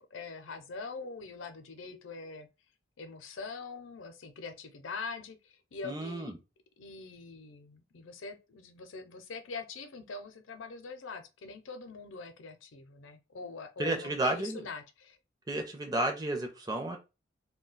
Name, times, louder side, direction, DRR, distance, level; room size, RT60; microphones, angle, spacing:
voice 1, 0.0-2.5 3.0-5.4 5.7-6.4 6.8-15.2, left 4 dB, 80° left, 0.5 m, -43 dB
voice 2, 5.8-6.4 13.8-14.7 15.5-17.0, right 1 dB, 20° right, 0.5 m, -32 dB
2.3 x 2.2 x 3.8 m
head